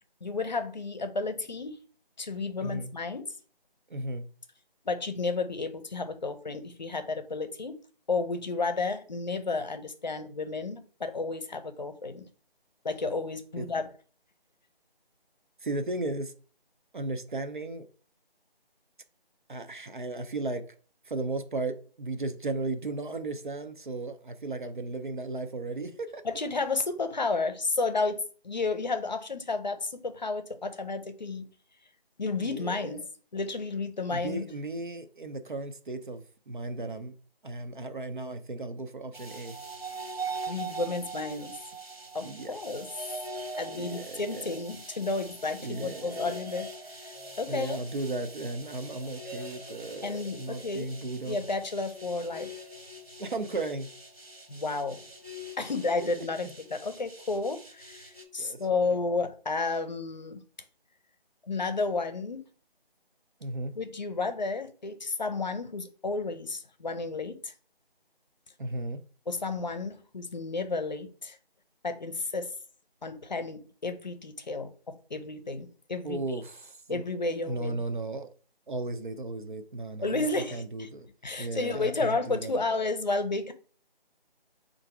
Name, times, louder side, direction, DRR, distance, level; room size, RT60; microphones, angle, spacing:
voice 1, 0.2-1.8 2.2-3.3 4.9-7.8 8.1-12.3 12.8-13.9 26.2-31.5 32.2-33.0 33.3-34.5 40.5-41.6 42.1-42.9 43.6-46.7 47.0-47.1 47.4-47.8 50.0-50.9 51.2-52.5 54.5-55.0 55.6-60.4 61.5-62.4 63.8-67.5 69.3-71.4 71.8-72.5 73.0-76.2 76.9-77.8 80.0-80.9 81.2-83.5, left 3 dB, 45° left, 0.6 m, -32 dB
voice 2, 2.6-2.9 3.9-4.3 13.6-13.7 15.6-16.3 16.9-17.9 19.5-20.6 21.1-26.2 32.3-32.9 34.1-37.1 37.4-39.6 42.2-42.6 43.7-44.5 45.6-46.3 47.5-51.4 53.2-53.9 56.2-56.3 58.4-58.8 63.4-63.8 68.6-69.0 76.0-77.0 77.4-78.3 78.7-81.1 81.4-82.6, right 2 dB, 55° right, 0.5 m, -35 dB
sound 1, 39.1-58.2, right 2 dB, 80° right, 1.4 m, -42 dB
3.8 x 2.6 x 4.5 m
figure-of-eight pair, 170°, 30 cm